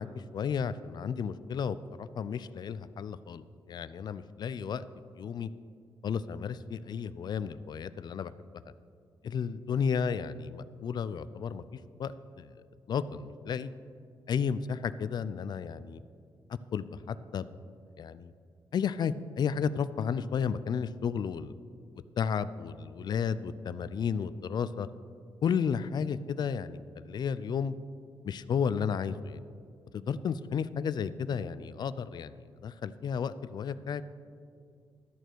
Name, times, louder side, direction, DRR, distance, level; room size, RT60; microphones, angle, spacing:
voice 1, 0.0-4.8 5.2-5.5 6.0-8.3 9.2-11.6 12.0-12.5 12.9-13.7 14.3-16.0 16.7-17.5 18.0-18.3 18.7-21.5 22.2-24.9 25.4-27.7 28.2-29.4 29.9-32.4 32.6-34.0, left 7 dB, 55° left, 15 dB, 0.3 m, -33 dB
12.5 x 6.8 x 4.6 m, 2.3 s
wide cardioid pair, 140°, 9 cm